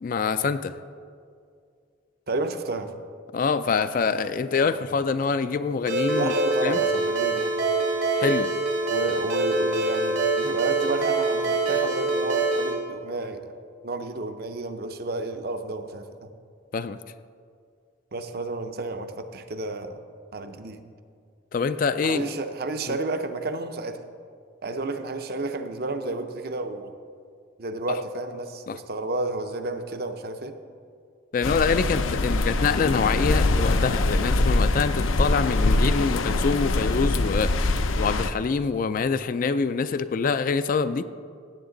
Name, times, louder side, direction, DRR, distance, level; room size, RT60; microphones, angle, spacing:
voice 1, 0.0-0.7 3.3-6.3 6.6-6.8 8.2-8.5 16.7-17.0 21.5-22.3 22.9-23.0 28.7-28.8 31.3-41.1, left 5 dB, 40° left, 12 dB, 0.3 m, -25 dB
voice 2, 2.3-2.9 6.2-7.5 8.9-13.6 13.8-16.3 18.1-20.0 20.3-20.8 22.0-24.0 24.6-27.0 27.6-30.6, right 2 dB, 50° right, 8 dB, 0.6 m, -31 dB
Ringtone, 5.9-12.7, right 3 dB, 80° right, 2.5 m, -24 dB
sound 1, 31.4-38.3, left 2 dB, 85° left, 0.6 m, -23 dB
16.5 x 7.9 x 3.9 m, 2.2 s
head